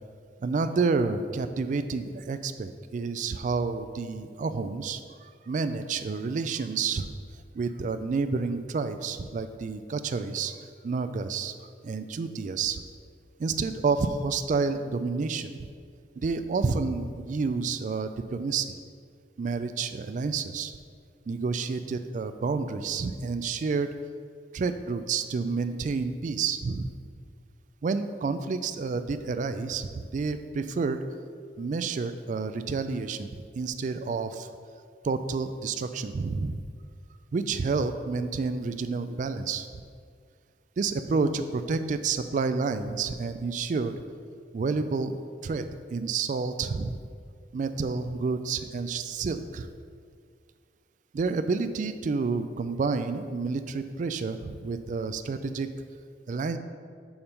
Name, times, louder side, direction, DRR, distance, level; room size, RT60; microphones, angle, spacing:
voice 1, 0.4-7.1 7.5-10.6 10.8-11.5 11.8-12.8 13.4-15.5 16.2-18.7 19.4-20.7 21.3-23.9 24.5-26.9 27.8-31.0 31.6-34.5 35.0-36.6 37.3-39.7 40.8-43.9 44.5-47.0 47.5-49.7 51.1-55.7 56.3-56.6, right 4 dB, 45° right, 10 dB, 0.3 m, -29 dB
7.0 x 3.6 x 5.2 m, 2.1 s
head